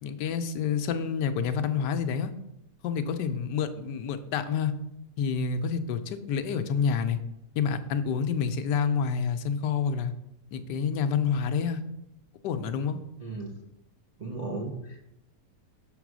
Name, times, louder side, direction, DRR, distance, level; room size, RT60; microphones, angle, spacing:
voice 1, 0.0-2.3 2.8-4.7 5.2-7.2 7.6-10.1 10.5-11.8 12.4-13.0, left 6 dB, 85° left, 9 dB, 1.2 m, -28 dB
voice 2, 13.2-13.6 14.2-15.1, right 3 dB, 55° right, -2 dB, 0.4 m, -36 dB
6.0 x 3.9 x 6.1 m, 0.84 s
omnidirectional pair, 1.8 m